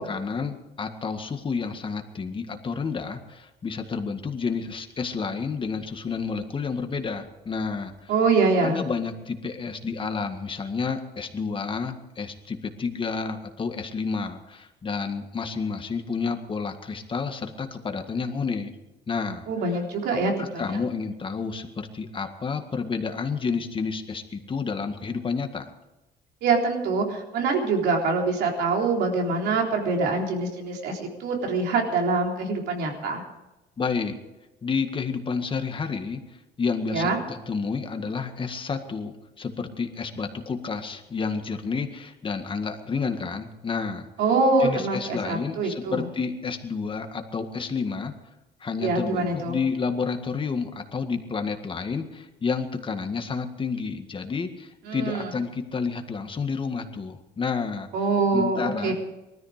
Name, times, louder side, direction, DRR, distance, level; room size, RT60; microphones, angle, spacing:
voice 1, 0.0-8.1 8.6-18.7 19.1-19.4 20.4-25.7 33.8-34.2 34.6-36.2 36.6-44.1 44.6-48.1 48.6-57.9 58.3-58.9, left 5 dB, 30° left, 6 dB, 1.8 m, -30 dB
voice 2, 8.1-8.8 19.5-20.8 26.4-33.2 36.9-37.2 44.2-46.1 48.8-49.6 54.9-55.3 57.9-58.9, right 3 dB, 80° right, 1 dB, 3.7 m, -24 dB
19.5 x 13.5 x 5.1 m, 1.0 s
cardioid pair, 110°, 17 cm